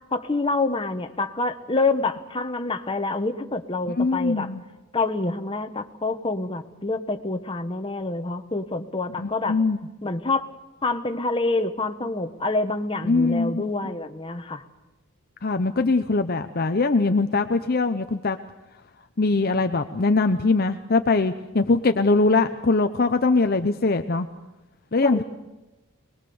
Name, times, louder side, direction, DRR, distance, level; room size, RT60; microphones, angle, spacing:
voice 1, 0.1-4.5 4.9-9.6 10.0-10.5 10.8-14.6 25.0-25.2, left 3 dB, 25° left, 7 dB, 1.1 m, -27 dB
voice 2, 3.9-4.6 9.2-9.8 13.1-13.7 15.4-18.4 19.2-24.3 24.9-25.2, left 3 dB, 45° left, 8 dB, 0.7 m, -22 dB
23.5 x 20.5 x 7.0 m, 1.1 s
head